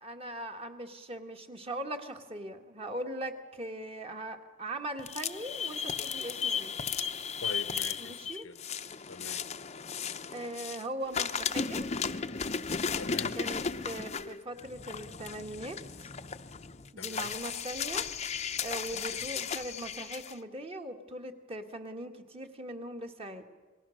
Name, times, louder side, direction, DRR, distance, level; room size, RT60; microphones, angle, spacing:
voice 1, 0.0-6.7 8.0-8.5 10.3-11.9 13.3-16.1 16.9-18.1 18.6-23.4, right 1 dB, 30° right, 1.6 m, -40 dB
sound 1, 5.0-10.8 11.1-20.3, left 6 dB, 30° left, 0.7 m, -35 dB
voice 2, 7.4-8.6 9.1-9.4 13.0-13.4 17.0-17.3 18.8-19.2, left 4 dB, 70° left, 0.9 m, -43 dB
28.0 x 20.5 x 6.4 m
head